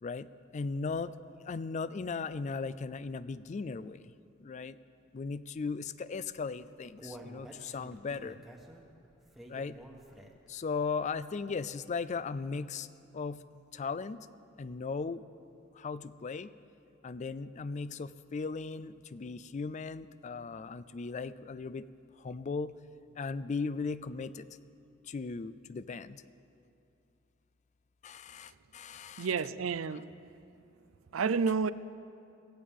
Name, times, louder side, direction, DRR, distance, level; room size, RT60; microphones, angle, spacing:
voice 1, 0.0-1.1 1.4-4.1 4.4-4.8 5.1-8.4 9.5-9.8 10.5-12.9 13.1-13.4 13.7-14.3 14.6-15.2 15.8-16.5 17.0-21.9 22.2-22.7 23.2-24.5 25.1-26.2 28.0-29.3 29.9-30.0, left 4 dB, 35° left, 0.4 m, -37 dB
Human voice, 6.4-10.6 10.9-11.0 11.5-11.6, right 1 dB, ahead, 1.3 m, -50 dB
voice 2, 29.2-30.1 31.1-31.7, right 5 dB, 85° right, 0.5 m, -30 dB
22.5 x 15.5 x 3.6 m
head